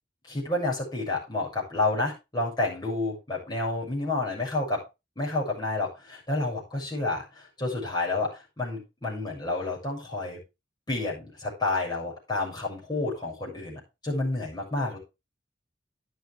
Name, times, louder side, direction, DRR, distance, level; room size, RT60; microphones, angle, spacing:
voice 1, 0.3-4.8 5.2-10.4 10.9-15.0, left 2 dB, 25° left, -4 dB, 7.0 m, -30 dB
12.0 x 9.0 x 3.6 m, 0.26 s
head